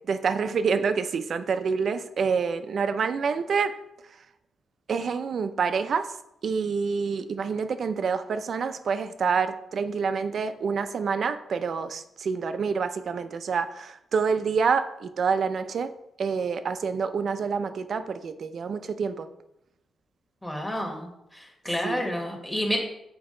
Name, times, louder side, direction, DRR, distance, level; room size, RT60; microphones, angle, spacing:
voice 1, 0.1-3.8 4.9-6.1 6.4-15.9 16.2-19.3 21.8-22.1, right 5 dB, 50° right, 10 dB, 0.5 m, -27 dB
voice 2, 20.4-21.1 21.3-22.8, left 1 dB, 5° left, 1 dB, 1.3 m, -29 dB
8.0 x 4.7 x 3.7 m, 0.84 s
wide cardioid pair, 155°, 0 cm